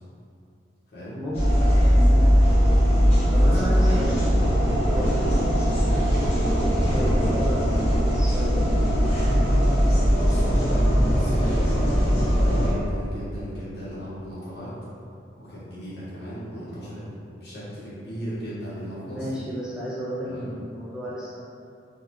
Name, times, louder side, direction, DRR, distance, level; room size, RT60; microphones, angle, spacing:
sound 1, 1.3-12.7, equal, 35° left, 0.9 m, -20 dB
voice 1, 1.8-2.3 3.3-4.2 4.9-6.2 6.6-7.6 8.0-8.8 19.1-21.4, equal, 5° right, -8 dB, 0.4 m, -32 dB
voice 2, 3.3-3.9 10.2-14.7 15.4-17.0 17.3-19.3 20.2-20.5, equal, 60° left, -10 dB, 1.2 m, -37 dB
3.8 x 2.3 x 3.0 m, 2.4 s
head